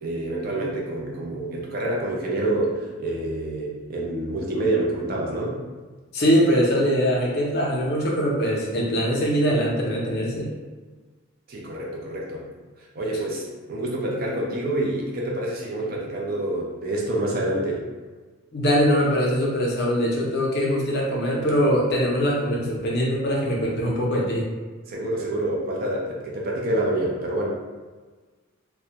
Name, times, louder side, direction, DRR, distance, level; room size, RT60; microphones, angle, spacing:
voice 1, 0.0-5.6 11.5-12.5 12.9-17.9 24.9-27.5, right 1 dB, 45° right, -2 dB, 0.4 m, -27 dB
voice 2, 6.1-10.5 18.5-24.5, equal, 45° left, -3 dB, 0.5 m, -22 dB
2.2 x 2.1 x 2.7 m, 1.3 s
head